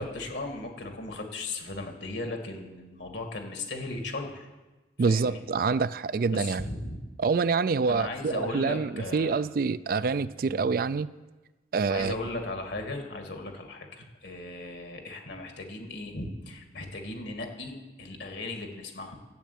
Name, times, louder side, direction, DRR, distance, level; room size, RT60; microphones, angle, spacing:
voice 1, 0.0-4.5 5.1-5.4 6.3-7.0 7.9-9.4 11.9-19.2, left 2 dB, 70° left, 4 dB, 2.2 m, -37 dB
voice 2, 5.0-6.6 7.2-11.1 11.7-12.2, right 4 dB, 50° right, 16 dB, 0.3 m, -26 dB
12.5 x 8.2 x 8.5 m, 1.2 s
head